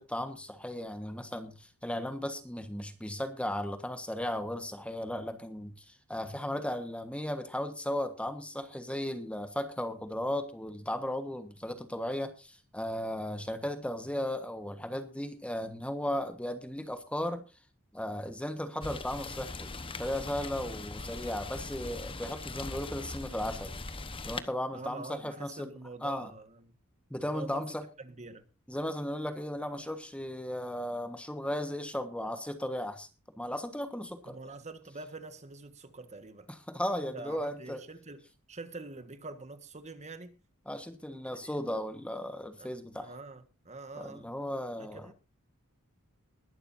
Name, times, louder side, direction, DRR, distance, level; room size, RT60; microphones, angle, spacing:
voice 1, 0.0-17.4 17.9-19.7 20.0-23.7 24.2-25.7 26.0-26.3 27.1-27.8 28.7-33.1 33.4-34.4 36.5-37.8 40.7-43.1 43.9-45.1, left 1 dB, 5° left, 1.3 m, -36 dB
Rain, 18.8-24.4, left 3 dB, 25° left, 1.1 m, -40 dB
voice 2, 24.7-26.7 27.3-28.5 34.2-36.5 37.1-40.4 41.4-41.5 42.6-44.3 44.8-45.1, right 3 dB, 30° right, 1.5 m, -45 dB
21.0 x 12.0 x 2.7 m
head